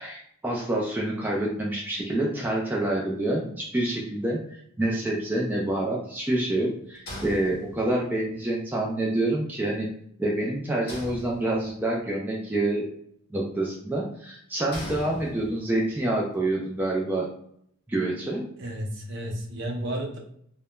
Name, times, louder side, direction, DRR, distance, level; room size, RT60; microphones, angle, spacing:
voice 1, 0.0-4.4 4.8-9.9 10.2-12.8 13.3-17.3 17.9-18.5, right 1 dB, 10° right, -3 dB, 0.3 m, -27 dB
sound 1, 7.1-8.1 10.9-11.9 14.7-15.8, equal, 50° left, 0.7 m, -39 dB
voice 2, 18.6-20.2, right 1 dB, 60° right, 1 dB, 0.6 m, -32 dB
2.2 x 2.1 x 2.9 m, 0.68 s
head